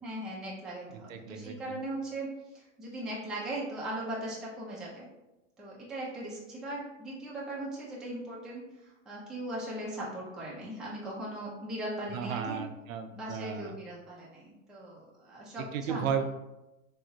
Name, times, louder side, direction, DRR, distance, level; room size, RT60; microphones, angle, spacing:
voice 1, 0.0-5.1 5.6-12.6 13.1-16.1, right 1 dB, ahead, -7 dB, 0.3 m, -39 dB
voice 2, 1.1-1.5 12.1-13.7 15.7-16.2, right 7 dB, 85° right, 7 dB, 0.5 m, -34 dB
3.7 x 2.0 x 2.6 m, 0.97 s
hypercardioid pair, 120°, 39 cm